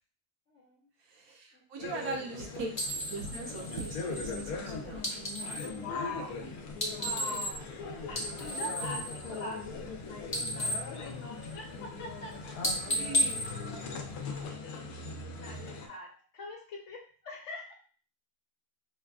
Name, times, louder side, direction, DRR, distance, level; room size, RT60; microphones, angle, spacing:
voice 1, 0.5-0.9 1.5-2.4 5.8-6.4 6.9-7.6 8.1-13.0 14.2-14.7 15.4-17.7, left 2 dB, 60° left, -1 dB, 1.2 m, -44 dB
voice 2, 1.1-2.7 3.1-5.1 8.5-8.7 12.9-13.4, right 3 dB, 75° right, 1 dB, 1.2 m, -40 dB
sound 1, 1.8-15.9, left 4 dB, 80° left, 1.1 m, -40 dB
sound 2, 2.7-5.8 6.7-7.8 8.1-9.9 10.2-11.8 12.1-12.3 12.6-14.4, equal, 30° left, 0.6 m, -34 dB
5.0 x 2.3 x 2.3 m, 0.40 s
omnidirectional pair, 1.5 m